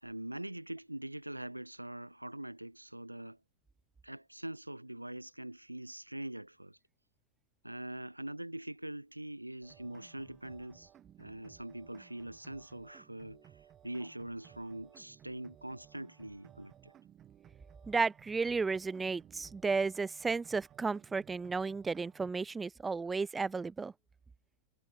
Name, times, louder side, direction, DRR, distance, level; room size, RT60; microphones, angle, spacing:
voice 1, 0.0-3.4 4.0-6.8 7.6-10.9 11.2-16.9, right 1 dB, 85° right, 0.6 m, -43 dB
sound 1, 9.6-22.3, right 10 dB, 30° right, 6.0 m, -59 dB
voice 2, 17.9-23.9, right 4 dB, 15° right, 0.5 m, -33 dB
figure-of-eight pair, 90°, 0 cm